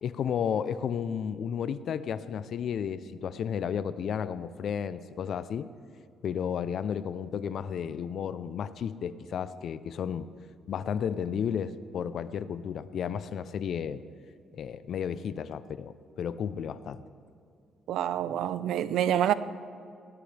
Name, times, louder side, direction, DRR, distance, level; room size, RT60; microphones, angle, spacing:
voice 1, 0.0-5.7 6.2-10.3 10.7-14.0 14.5-17.0, left 8 dB, 65° left, 0.6 m, -33 dB
voice 2, 17.9-19.3, right 10 dB, 80° right, 0.6 m, -27 dB
19.0 x 18.0 x 3.4 m
cardioid pair, 90°, 0 cm